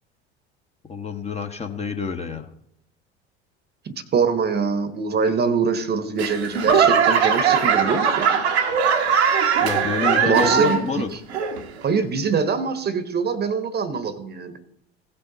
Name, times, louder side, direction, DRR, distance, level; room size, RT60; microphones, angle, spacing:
voice 1, 0.9-2.5 9.6-11.1, left 5 dB, 20° left, 4 dB, 1.0 m, -28 dB
voice 2, 3.8-8.3 10.2-11.0 11.8-14.5, right 5 dB, 30° right, 12 dB, 1.1 m, -23 dB
Laughter / Clapping / Crowd, 6.2-11.0 11.3-11.8 12.4-12.5, right 6 dB, 70° right, 1.2 m, -20 dB
16.5 x 5.7 x 4.0 m, 0.74 s
figure-of-eight pair, 65°, 33 cm